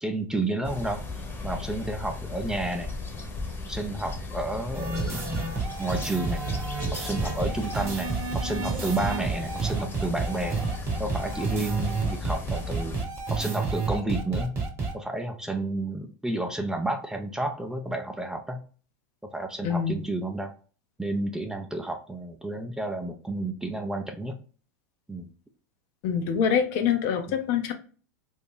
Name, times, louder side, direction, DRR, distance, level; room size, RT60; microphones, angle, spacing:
voice 1, 0.0-1.0 1.4-2.9 3.7-5.4 5.8-6.4 7.0-8.1 8.3-10.6 11.0-13.0 13.3-14.6 14.9-18.6 19.3-20.5 21.0-24.4 25.1-25.3 27.3-27.4, right 2 dB, 5° right, 4 dB, 0.5 m, -31 dB
sound 1, 0.6-13.0, left 3 dB, 20° left, 1.0 m, -36 dB
sound 2, 4.7-14.9, right 4 dB, 25° right, 1.1 m, -30 dB
voice 2, 19.6-20.0 26.0-27.7, left 7 dB, 55° left, 7 dB, 0.7 m, -25 dB
2.8 x 2.6 x 3.7 m, 0.39 s
hypercardioid pair, 105°, 10 cm